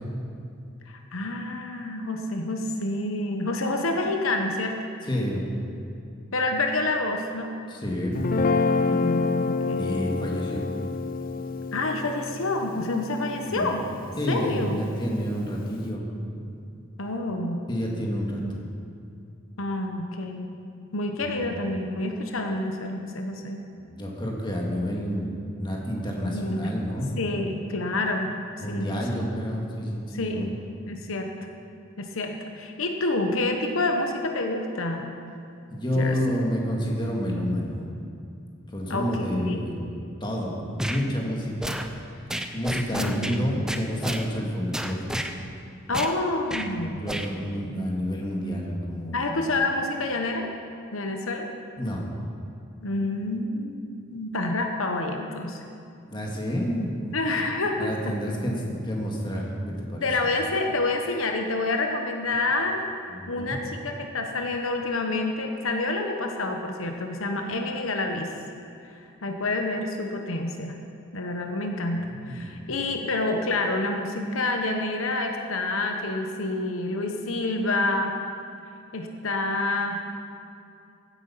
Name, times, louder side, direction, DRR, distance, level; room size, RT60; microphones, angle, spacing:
voice 1, 0.9-4.8 6.3-7.5 8.9-9.9 11.7-13.9 14.3-14.8 17.0-17.6 19.6-20.5 20.9-23.6 26.3-26.7 27.2-28.3 28.7-28.9 29.2-29.3 30.1-30.5 30.9-31.3 32.0-35.1 35.9-36.2 38.9-39.6 43.0-43.4 45.9-47.0 49.1-50.5 50.9-51.5 52.8-55.6 57.1-58.1 60.0-62.9 63.3-68.3 68.9-70.8 71.1-78.1 78.9-80.0, left 2 dB, 80° left, 3 dB, 1.1 m, -28 dB
voice 2, 5.0-5.5 7.7-8.1 9.7-10.6 13.5-13.7 14.2-16.1 16.4-16.6 17.7-18.6 21.4-21.6 23.8-27.1 28.6-30.5 35.7-37.9 38.7-39.8 40.2-41.8 42.5-45.1 46.6-49.3 51.8-52.1 56.1-57.2 57.8-60.1 63.1-63.6 72.1-72.5, equal, 20° left, -2 dB, 2.0 m, -29 dB
Guitar, 8.1-14.5, left 4 dB, 45° left, 0.5 m, -28 dB
sound 1, 40.8-41.0 41.6-41.9 42.3-43.4 43.7-44.2 44.7-45.3 45.9-46.1 46.5-46.7 47.1-47.3, equal, 5° right, 0.6 m, -30 dB
15.5 x 9.2 x 5.7 m, 2.5 s
head